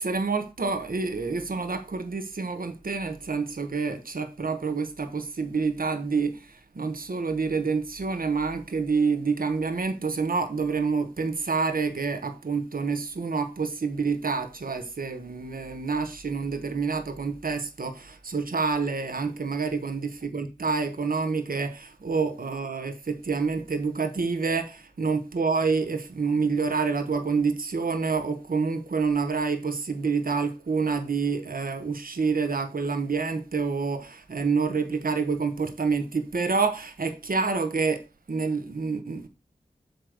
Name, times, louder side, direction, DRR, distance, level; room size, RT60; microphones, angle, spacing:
voice 1, 0.0-39.3, right 4 dB, 65° right, 1.3 m, -28 dB
8.0 x 3.3 x 6.5 m
cardioid pair, 45°, 16 cm